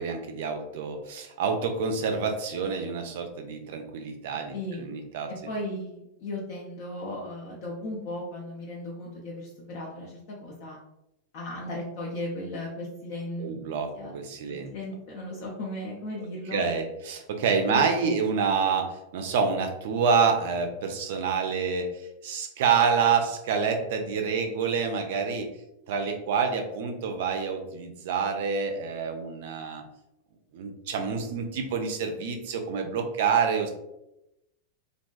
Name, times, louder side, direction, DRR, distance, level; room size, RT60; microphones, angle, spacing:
voice 1, 0.0-5.3 13.4-14.7 16.5-25.5 25.9-29.8 30.5-33.7, right 5 dB, 55° right, 5 dB, 0.4 m, -27 dB
voice 2, 4.5-4.8 5.5-10.8 11.3-13.6 14.0-14.1 14.7-16.6 17.7-18.3, left 1 dB, 50° left, -4 dB, 0.5 m, -36 dB
2.5 x 2.2 x 2.3 m, 0.88 s
figure-of-eight pair, 90°, 0 cm